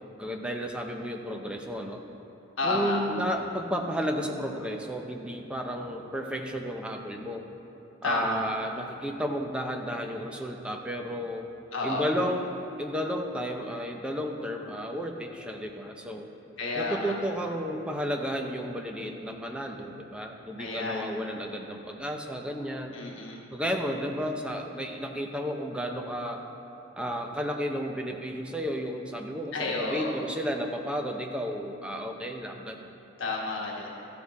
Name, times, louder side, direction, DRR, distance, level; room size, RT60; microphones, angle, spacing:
voice 1, 0.2-2.0 2.6-7.4 8.0-11.5 11.8-12.5 12.8-16.3 16.8-23.0 23.5-26.4 27.0-32.8, equal, 5° right, 2 dB, 0.6 m, -32 dB
voice 2, 2.6-3.0 8.0-8.4 11.7-12.0 16.6-17.1 20.6-21.1 22.9-23.4 29.5-30.1 33.2-34.0, left 3 dB, 75° left, -2 dB, 1.3 m, -31 dB
14.0 x 7.2 x 4.2 m, 2.8 s
head